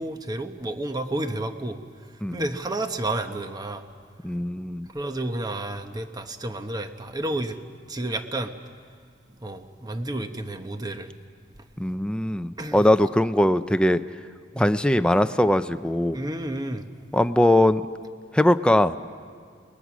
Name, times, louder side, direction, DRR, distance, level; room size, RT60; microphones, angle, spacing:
voice 1, 0.0-1.8 2.3-3.9 4.9-7.6 7.9-8.5 9.4-11.1 12.6-12.8 14.5-14.8 16.1-17.1, right 1 dB, 20° right, 7 dB, 1.1 m, -31 dB
voice 2, 4.2-4.9 11.8-14.0 14.6-16.2 17.1-17.8 18.3-19.0, left 1 dB, 5° left, 10 dB, 0.5 m, -21 dB
29.5 x 20.5 x 6.2 m, 2.1 s
head